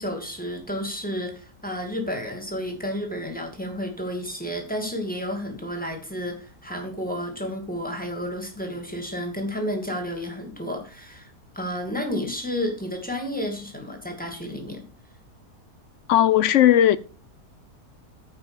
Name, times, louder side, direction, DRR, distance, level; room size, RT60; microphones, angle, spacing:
voice 1, 0.0-14.8, equal, 5° left, 2.5 m, -31 dB
voice 2, 16.1-17.0, left 11 dB, 65° left, 0.8 m, -16 dB
9.7 x 5.4 x 7.2 m
omnidirectional pair, 1.6 m